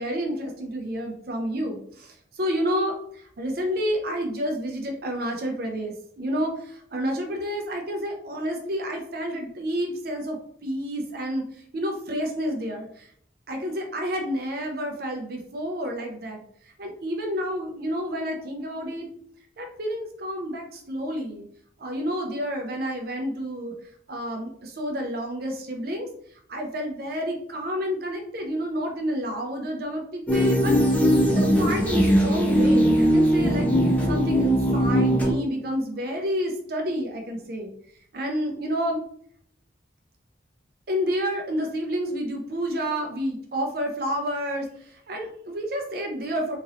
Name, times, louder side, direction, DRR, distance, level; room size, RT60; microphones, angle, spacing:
voice 1, 0.0-11.5 11.7-13.1 13.5-16.4 16.8-19.1 19.6-21.4 21.8-23.7 24.1-26.1 26.5-30.7 31.3-33.7 34.1-37.7 38.1-39.0 40.9-44.7 45.1-46.6, equal, 50° right, 3 dB, 0.5 m, -29 dB
sound 1, 30.3-35.3, equal, 5° left, 0.4 m, -20 dB
2.9 x 2.6 x 2.7 m, 0.62 s
head